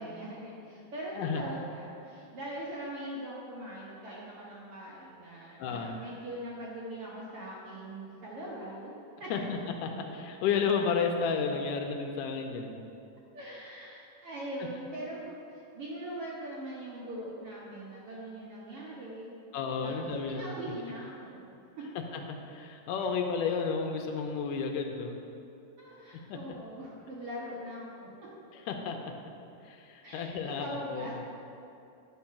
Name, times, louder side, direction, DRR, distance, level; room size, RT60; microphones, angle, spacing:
voice 1, 0.0-8.9 9.2-9.4 13.3-19.4 19.8-20.0 20.3-21.5 21.8-21.9 23.0-23.1 25.8-28.1 30.0-31.1, right 1 dB, 65° right, -6 dB, 1.5 m, -41 dB
voice 2, 5.6-6.0 9.3-12.8 19.5-20.5 22.1-22.2 22.5-25.2 26.3-26.4 28.5-29.0 29.6-31.2, left 5 dB, 80° left, 3 dB, 2.1 m, -32 dB
10.5 x 4.6 x 5.7 m, 2.6 s
omnidirectional pair, 3.9 m